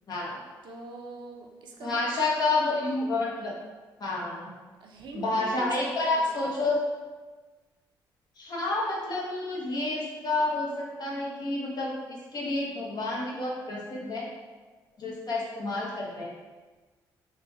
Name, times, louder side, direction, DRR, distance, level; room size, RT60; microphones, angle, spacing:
voice 1, 0.1-0.4 1.8-3.5 4.0-4.5 5.1-6.8 8.4-14.3 15.0-16.3, left 2 dB, 55° left, -4 dB, 1.1 m, -29 dB
voice 2, 0.6-2.3 4.8-5.7 6.0-6.5, right 3 dB, 65° right, 1 dB, 0.6 m, -43 dB
3.2 x 2.3 x 4.1 m, 1.3 s
supercardioid pair, 65°, 8 cm